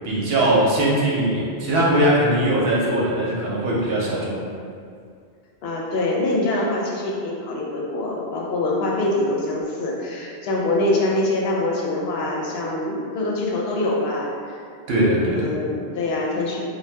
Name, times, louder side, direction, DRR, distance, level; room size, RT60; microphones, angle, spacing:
voice 1, 0.0-4.4 14.9-15.5, right 1 dB, 75° right, -5 dB, 0.9 m, -20 dB
voice 2, 5.6-14.6 15.2-16.6, left 2 dB, 75° left, -2 dB, 0.8 m, -24 dB
2.6 x 2.2 x 3.3 m, 2.2 s
omnidirectional pair, 1.1 m